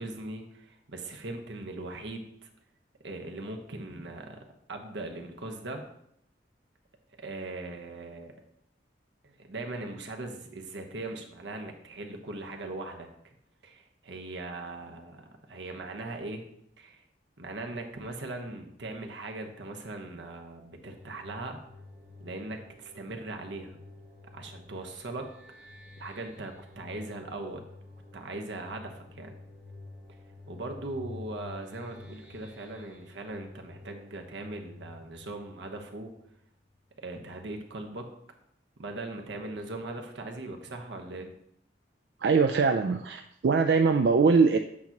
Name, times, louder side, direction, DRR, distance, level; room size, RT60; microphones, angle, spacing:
voice 1, 0.0-2.5 3.0-4.4 4.7-5.9 7.2-8.3 9.2-13.3 13.6-16.4 16.8-17.0 17.4-21.6 22.2-23.8 24.3-25.3 26.0-27.6 28.1-29.3 30.5-36.1 37.0-38.1 38.8-41.3, right 2 dB, 85° right, 3 dB, 1.0 m, -39 dB
sound 1, 20.9-36.4, left 2 dB, 5° right, 1.2 m, -50 dB
voice 2, 42.2-44.6, right 4 dB, 65° right, 6 dB, 0.3 m, -22 dB
8.5 x 2.9 x 5.8 m, 0.75 s
head